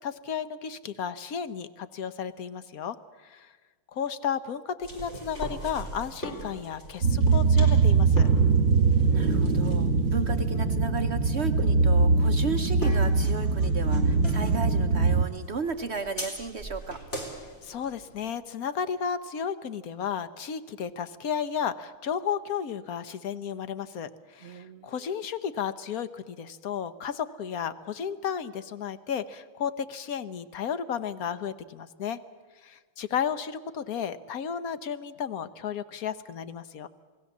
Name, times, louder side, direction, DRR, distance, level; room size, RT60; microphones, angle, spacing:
voice 1, 0.0-3.0 3.2-3.5 3.9-8.3 17.6-32.2 32.6-36.9, left 7 dB, 55° left, 13 dB, 1.1 m, -33 dB
sound 1, 4.8-18.3, right 1 dB, 30° left, 4.2 m, -41 dB
sound 2, 7.0-15.2, right 4 dB, 45° right, 1.7 m, -22 dB
voice 2, 9.1-17.0 24.4-24.9, right 4 dB, 60° right, 7 dB, 0.6 m, -34 dB
28.0 x 19.0 x 7.3 m, 1.4 s
omnidirectional pair, 2.3 m